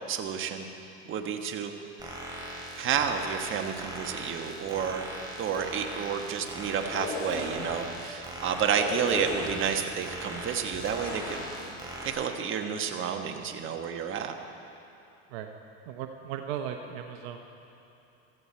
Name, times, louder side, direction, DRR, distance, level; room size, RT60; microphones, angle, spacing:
voice 1, 0.1-0.7 1.1-1.7 2.7-5.1 5.4-11.5 12.0-14.3, right 7 dB, 40° right, 5 dB, 1.3 m, -30 dB
sound 1, 2.0-12.1, right 1 dB, 15° right, 4.0 m, -40 dB
sound 2, 6.8-7.8 8.7-9.8 10.7-11.7, left 3 dB, 45° left, 3.2 m, -36 dB
voice 2, 15.9-17.4, right 9 dB, 70° right, 5 dB, 1.0 m, -37 dB
16.0 x 14.0 x 4.4 m, 2.8 s
supercardioid pair, 100°, 31 cm